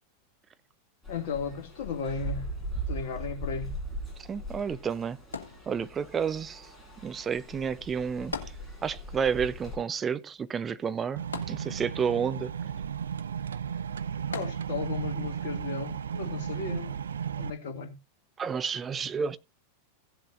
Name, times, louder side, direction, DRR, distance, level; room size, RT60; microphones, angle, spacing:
sound 1, 1.0-9.8, right 1 dB, 10° left, 4.5 m, -39 dB
voice 1, 1.1-2.5 2.9-3.8 14.2-17.0 17.4-18.0, left 5 dB, 55° left, 2.3 m, -35 dB
voice 2, 4.2-5.2 5.7-6.7 7.0-8.5 8.8-11.2 11.5-12.5 18.4-19.4, right 7 dB, 20° right, 0.7 m, -30 dB
sound 2, 5.3-6.2 8.3-9.2 9.5-9.6 11.3-12.2 14.3-15.0 15.7-15.8, left 4 dB, 70° left, 1.9 m, -40 dB
sound 3, 11.2-17.5, right 8 dB, 70° right, 0.5 m, -34 dB
16.5 x 7.6 x 2.7 m
figure-of-eight pair, 90°, 0 cm